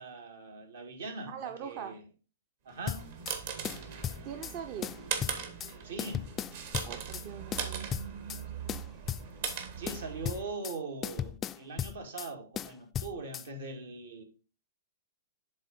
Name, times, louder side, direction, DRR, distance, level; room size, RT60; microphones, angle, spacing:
voice 1, 0.0-2.0 2.6-3.1 5.8-6.3 9.8-14.2, right 3 dB, 75° right, 2.0 m, -41 dB
voice 2, 1.3-2.0 4.2-4.9 6.8-7.9, right 8 dB, 40° right, 0.7 m, -41 dB
sound 1, 2.8-10.5, right 7 dB, 55° right, 1.5 m, -39 dB
sound 2, 2.9-3.4 3.6-4.5 4.8-5.7 6.0-7.3 7.5-8.4 8.7-9.6 9.9-10.8 11.0-12.3 12.6-13.5, left 10 dB, 25° left, 0.3 m, -36 dB
7.7 x 3.7 x 5.3 m
hypercardioid pair, 115°, 0 cm